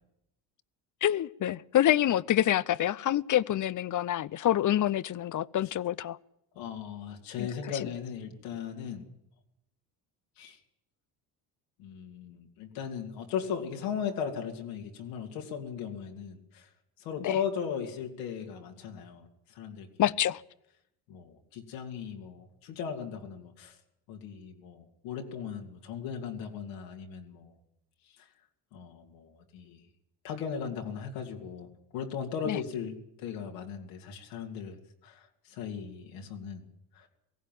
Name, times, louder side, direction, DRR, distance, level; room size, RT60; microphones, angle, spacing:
voice 1, 1.0-6.2 7.4-7.5 17.2-17.4 20.0-20.4 32.5-32.6, left 12 dB, 45° left, 0.7 m, -27 dB
voice 2, 6.5-9.1 10.4-10.6 11.8-16.7 17.0-19.9 21.1-23.8 24.1-27.5 28.2-28.3 28.7-29.8 30.2-34.8 35.0-36.6 36.9-37.1, left 7 dB, 90° left, 2.8 m, -37 dB
18.0 x 16.0 x 9.3 m
supercardioid pair, 70°, 44 cm